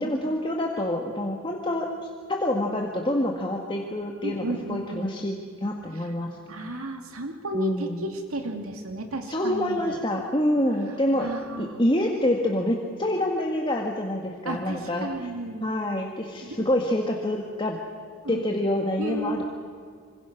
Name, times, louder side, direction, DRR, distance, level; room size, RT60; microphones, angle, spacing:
voice 1, 0.0-6.3 7.5-8.0 9.3-11.3 11.6-15.1 15.6-17.8 18.3-19.4, left 1 dB, 25° left, 1 dB, 1.8 m, -27 dB
voice 2, 4.2-5.1 5.9-6.1 6.5-10.0 11.2-11.8 14.4-15.7 16.4-16.7 18.2-18.5 19.0-19.4, right 1 dB, 85° right, 4 dB, 2.5 m, -33 dB
27.0 x 26.5 x 6.1 m, 2.1 s
head